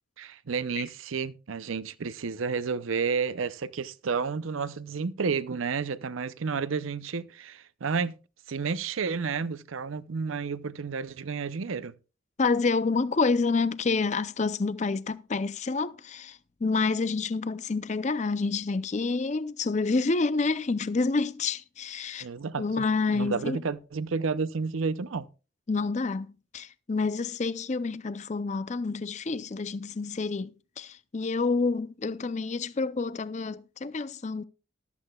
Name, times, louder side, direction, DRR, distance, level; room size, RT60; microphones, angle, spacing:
voice 1, 0.2-8.2 8.5-11.9 22.2-22.9 23.1-25.3, right 5 dB, 80° right, 0.6 m, -31 dB
voice 2, 12.4-22.3 22.6-23.6 25.7-34.4, left 4 dB, 35° left, 0.5 m, -28 dB
14.0 x 13.0 x 2.3 m
head